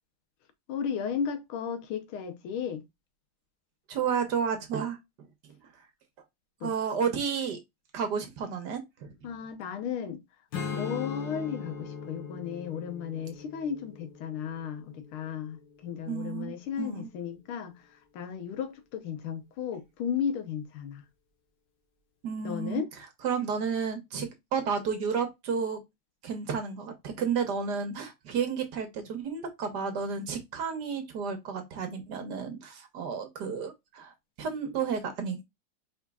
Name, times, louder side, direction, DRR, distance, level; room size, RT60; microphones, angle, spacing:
voice 1, 0.7-2.8 6.6-6.7 9.2-10.2 10.7-21.0 22.4-22.9, left 7 dB, 90° left, 1.7 m, -34 dB
voice 2, 3.9-5.0 6.6-7.6 7.9-9.1 16.1-17.1 22.2-22.8 23.2-25.8 26.2-35.4, right 6 dB, 60° right, 1.3 m, -32 dB
Strum, 10.5-15.8, left 6 dB, 65° left, 1.6 m, -40 dB
5.0 x 3.7 x 2.3 m
omnidirectional pair, 2.3 m